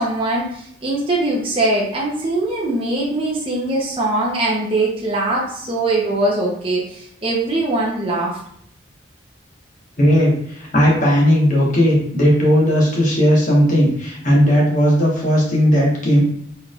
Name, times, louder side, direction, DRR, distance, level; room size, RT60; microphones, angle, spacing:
voice 1, 0.0-8.3, right 2 dB, 30° right, -4 dB, 0.8 m, -21 dB
voice 2, 10.0-16.2, equal, 40° left, -3 dB, 1.2 m, -16 dB
4.3 x 3.4 x 2.4 m, 0.69 s
head